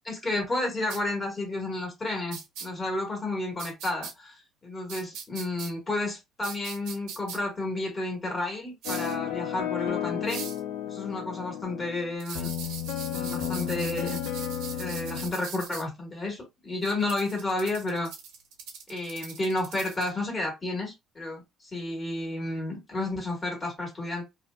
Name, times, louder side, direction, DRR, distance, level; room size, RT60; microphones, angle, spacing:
voice 1, 0.0-10.5 10.9-12.5 13.1-14.2 14.7-18.1 18.9-21.4 21.7-24.2, left 2 dB, 25° left, 1.4 m, -31 dB
sound 1, 0.9-1.0 2.3-2.7 3.6-4.1 4.9-5.7 6.4-7.4 8.8-9.1 10.3-10.6 12.2-15.8 16.8-20.1, right 6 dB, 80° right, 0.8 m, -40 dB
sound 2, 8.9-15.3, left 10 dB, 85° left, 0.5 m, -33 dB
2.6 x 2.3 x 2.2 m
cardioid pair, 100°, 0 cm